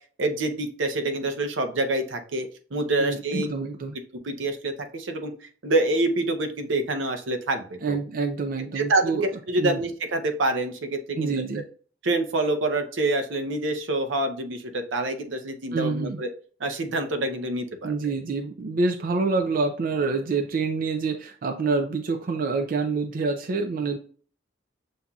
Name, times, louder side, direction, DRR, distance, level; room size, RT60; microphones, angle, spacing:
voice 1, 0.2-3.5 4.2-5.3 5.6-8.0 8.7-11.3 12.0-16.3 16.6-17.9, right 2 dB, 80° right, 6 dB, 0.7 m, -26 dB
voice 2, 3.0-3.9 7.8-9.3 9.6-9.8 11.2-11.6 15.7-16.2 17.8-24.0, right 4 dB, 50° right, 4 dB, 0.4 m, -27 dB
7.1 x 2.6 x 2.3 m, 0.43 s
head